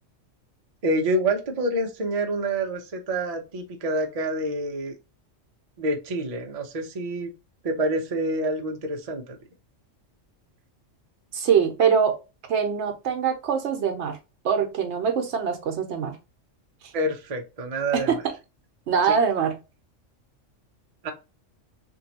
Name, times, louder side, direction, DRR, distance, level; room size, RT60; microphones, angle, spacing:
voice 1, 0.8-4.9 5.8-7.3 7.6-9.4 16.9-18.2 19.1-19.2 21.0-21.1, right 1 dB, 50° right, 0.4 m, -27 dB
voice 2, 11.3-12.2 12.5-14.2 14.4-16.2 17.9-18.2 18.9-19.6, right 7 dB, 65° right, 0.9 m, -23 dB
3.0 x 2.6 x 2.7 m
omnidirectional pair, 1.3 m